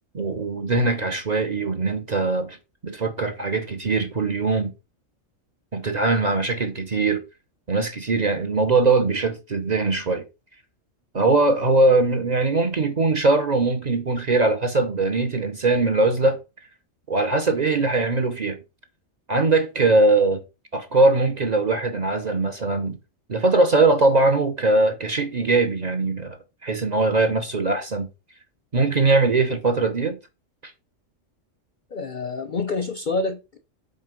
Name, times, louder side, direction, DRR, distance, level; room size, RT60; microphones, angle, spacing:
voice 1, 0.1-2.6 2.8-4.7 5.7-7.2 7.7-10.2 11.1-16.4 17.1-18.6 19.3-20.4 20.7-23.0 23.3-28.1 28.7-30.2 30.6-30.7, right 3 dB, 40° right, 0.7 m, -21 dB
voice 2, 31.9-33.6, left 3 dB, 50° left, 0.6 m, -27 dB
7.5 x 3.1 x 5.1 m
omnidirectional pair, 1.4 m